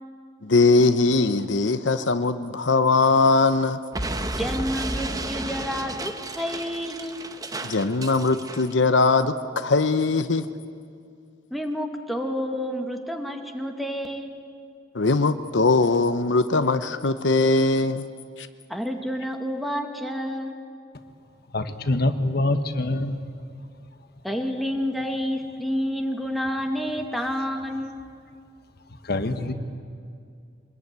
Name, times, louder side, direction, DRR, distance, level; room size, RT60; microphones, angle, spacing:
voice 1, 0.4-3.8 7.6-10.4 14.9-18.1, left 3 dB, 75° left, 10 dB, 0.9 m, -20 dB
Explosion, 3.9-8.7, right 2 dB, 20° right, 1.1 m, -32 dB
voice 2, 4.3-7.2 11.5-14.4 18.7-20.6 24.2-27.9, equal, ahead, 4 dB, 1.9 m, -29 dB
voice 3, 21.5-23.3 29.0-29.5, left 2 dB, 60° left, 8 dB, 1.4 m, -25 dB
24.5 x 21.0 x 9.5 m, 2.3 s
head